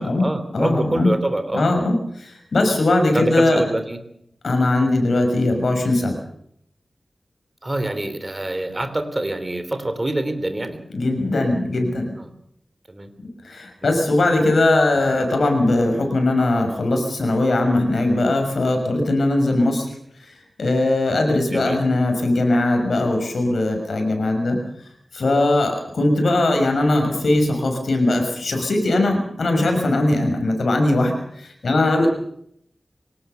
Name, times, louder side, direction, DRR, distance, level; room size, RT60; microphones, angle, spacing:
voice 1, 0.0-1.7 3.1-4.1 7.6-10.8 12.2-12.3 12.9-13.1 13.8-14.0 14.9-15.0 21.5-21.8, right 1 dB, 25° right, 9 dB, 3.2 m, -25 dB
voice 2, 0.5-1.1 1.5-3.6 4.4-6.2 10.9-12.1 13.4-19.9 20.2-20.3 20.6-24.6 25.1-32.1, left 2 dB, 80° left, 4 dB, 6.2 m, -20 dB
24.5 x 18.0 x 6.9 m, 0.71 s
wide cardioid pair, 100°, 0 cm